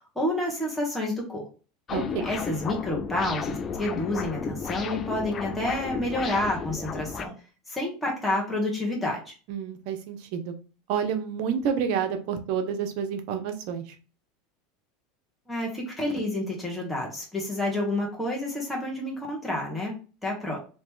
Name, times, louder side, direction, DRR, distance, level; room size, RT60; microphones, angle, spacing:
voice 1, 0.0-1.5 2.2-7.3 7.7-9.3 15.5-20.6, left 1 dB, 5° left, -3 dB, 1.3 m, -29 dB
sound 1, 1.9-7.3, left 6 dB, 35° left, 0.4 m, -33 dB
voice 2, 1.9-2.3 9.5-10.6 10.9-13.9, right 7 dB, 65° right, 6 dB, 0.8 m, -29 dB
3.1 x 2.9 x 3.5 m, 0.36 s
supercardioid pair, 110°, 0 cm